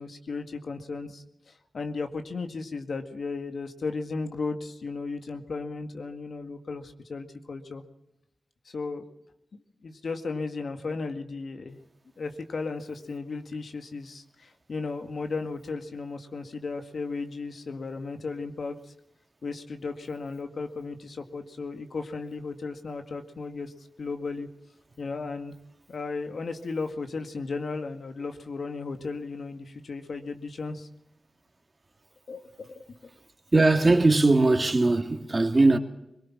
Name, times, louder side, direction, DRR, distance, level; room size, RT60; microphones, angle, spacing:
voice 1, 0.0-7.8 8.7-9.0 9.8-11.8 12.2-18.9 19.4-24.5 25.0-25.6 25.9-30.9 32.3-33.1, left 4 dB, 70° left, 1.9 m, -35 dB
voice 2, 33.5-35.8, right 2 dB, 35° right, 2.5 m, -20 dB
22.5 x 21.0 x 6.1 m
wide cardioid pair, 75°, 0 cm